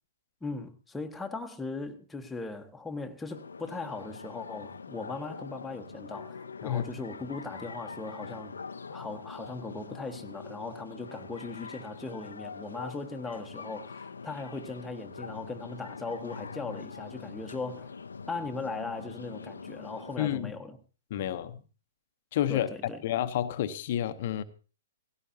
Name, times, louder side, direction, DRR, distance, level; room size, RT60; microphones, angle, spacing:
voice 1, 0.4-8.5 8.9-17.9 18.3-20.8 22.5-23.0, left 3 dB, 5° left, 1.4 m, -39 dB
sound 1, 3.3-20.2, left 5 dB, 75° left, 0.7 m, -43 dB
voice 2, 6.6-6.9 20.2-20.5 21.1-21.6 22.3-22.7 23.0-24.4, left 11 dB, 50° left, 1.0 m, -30 dB
18.0 x 16.5 x 2.9 m
figure-of-eight pair, 115°, 0 cm